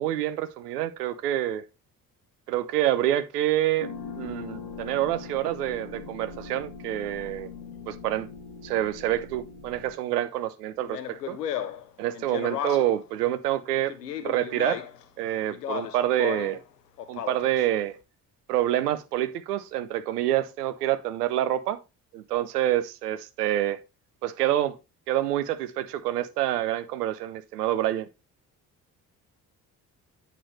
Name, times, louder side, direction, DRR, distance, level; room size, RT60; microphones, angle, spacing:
voice 1, 0.0-1.6 2.5-3.9 4.2-7.5 7.9-8.3 8.6-11.4 12.0-13.9 14.2-14.8 15.2-16.6 17.1-18.0 18.5-21.8 22.1-23.8 24.2-24.7 25.1-28.1, right 13 dB, 80° right, 0.7 m, -27 dB
sound 1, 3.8-9.9, left 4 dB, 50° left, 2.5 m, -41 dB
Speech, 10.9-13.1 13.9-15.0 15.5-16.6 17.0-17.6, left 10 dB, 85° left, 0.8 m, -34 dB
8.6 x 6.5 x 3.1 m
figure-of-eight pair, 45°, 47 cm